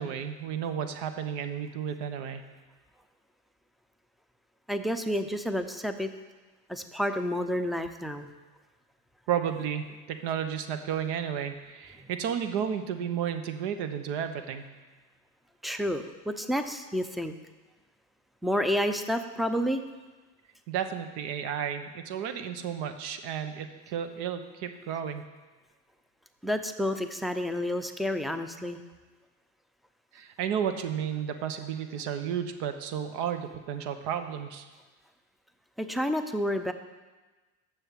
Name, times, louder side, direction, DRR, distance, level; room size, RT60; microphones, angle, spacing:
voice 1, 0.0-2.5 9.3-14.7 20.7-25.3 30.1-34.7, right 8 dB, 70° right, 8 dB, 1.0 m, -32 dB
voice 2, 4.7-6.1 6.7-8.3 15.6-17.3 18.4-19.8 26.4-28.8 35.8-36.7, equal, ahead, 8 dB, 0.4 m, -30 dB
6.6 x 6.4 x 7.4 m, 1.3 s
supercardioid pair, 95°, 42 cm